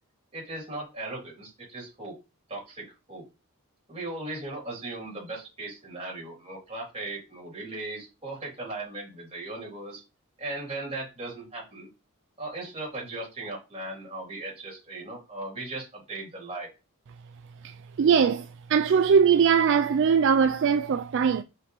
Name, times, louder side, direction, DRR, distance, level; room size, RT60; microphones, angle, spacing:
voice 1, 0.3-2.1 2.5-3.2 3.9-10.0 10.4-11.9 12.4-16.7, right 2 dB, 30° right, 3.6 m, -37 dB
voice 2, 18.0-21.4, right 6 dB, 55° right, 0.3 m, -21 dB
5.7 x 5.4 x 3.4 m
head